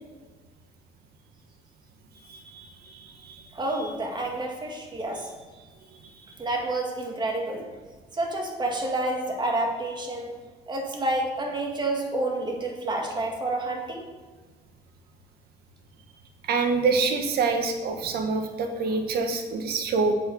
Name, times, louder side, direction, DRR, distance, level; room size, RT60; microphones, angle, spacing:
voice 1, 2.3-3.4 16.5-20.1, right 4 dB, 70° right, 5 dB, 1.5 m, -26 dB
voice 2, 3.5-5.3 6.4-7.7 8.1-10.3 10.7-14.1 18.9-19.0, right 2 dB, 25° right, 1 dB, 2.0 m, -29 dB
7.9 x 7.7 x 5.4 m, 1.4 s
cardioid pair, 110°, 17 cm